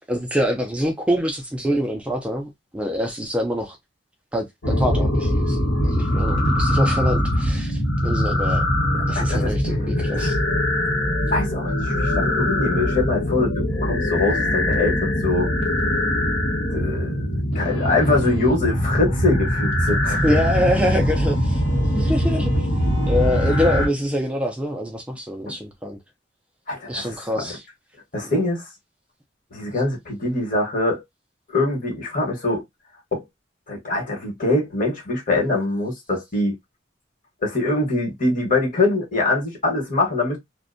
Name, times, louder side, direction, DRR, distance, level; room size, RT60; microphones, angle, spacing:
voice 1, 0.1-3.8 4.3-8.6 9.1-10.4 20.2-21.6 21.9-22.7 23.1-26.0 26.9-27.6 28.3-28.4, equal, 5° right, 0.4 m, -25 dB
sound 1, 4.6-23.9, equal, 70° left, 0.9 m, -22 dB
voice 2, 8.9-9.5 10.1-10.3 11.3-15.5 16.7-20.3 25.5-25.6 26.7-27.1 27.4-27.5 28.1-28.6 29.5-31.0 31.5-32.6 33.1-33.2 33.7-36.5 37.4-40.4, left 2 dB, 45° left, 1.1 m, -23 dB
2.5 x 2.1 x 2.5 m
head